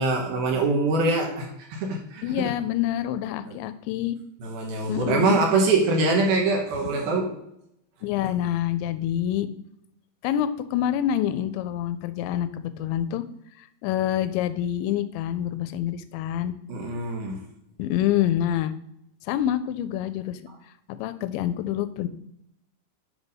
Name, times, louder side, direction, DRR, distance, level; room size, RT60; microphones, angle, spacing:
voice 1, 0.0-2.5 3.5-3.6 4.4-7.4 16.7-17.4, right 3 dB, 65° right, 1 dB, 2.7 m, -24 dB
voice 2, 2.2-4.2 4.9-5.4 8.0-9.5 10.2-13.2 13.8-16.5 17.8-18.7 19.3-20.4 20.9-22.1, left 11 dB, 90° left, 12 dB, 2.9 m, -26 dB
8.1 x 5.4 x 5.4 m, 0.77 s
omnidirectional pair, 5.2 m